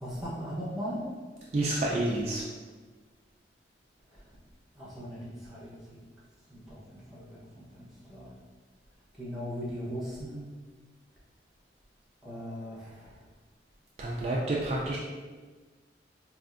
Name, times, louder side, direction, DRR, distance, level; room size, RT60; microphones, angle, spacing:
voice 1, 0.0-1.0 4.7-6.0 6.5-8.3 9.2-10.4 12.2-13.1, equal, ahead, -8 dB, 0.8 m, -39 dB
voice 2, 1.5-2.4 14.0-15.0, right 2 dB, 35° right, -4 dB, 0.3 m, -29 dB
4.4 x 2.4 x 2.5 m, 1.4 s
head